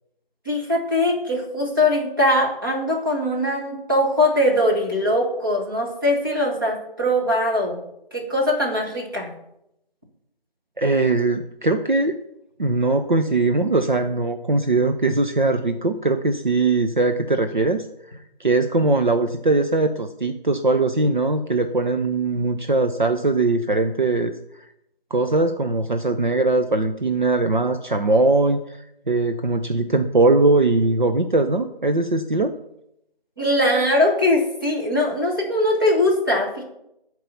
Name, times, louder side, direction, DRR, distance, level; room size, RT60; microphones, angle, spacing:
voice 1, 0.4-7.8 8.1-9.3 33.4-36.6, left 1 dB, 20° right, -3 dB, 1.6 m, -21 dB
voice 2, 10.8-12.2 12.6-17.9 18.4-24.3 25.1-28.6 29.1-32.5, right 3 dB, 55° right, 7 dB, 0.7 m, -20 dB
13.5 x 4.7 x 5.5 m, 0.80 s
figure-of-eight pair, 180°, 29 cm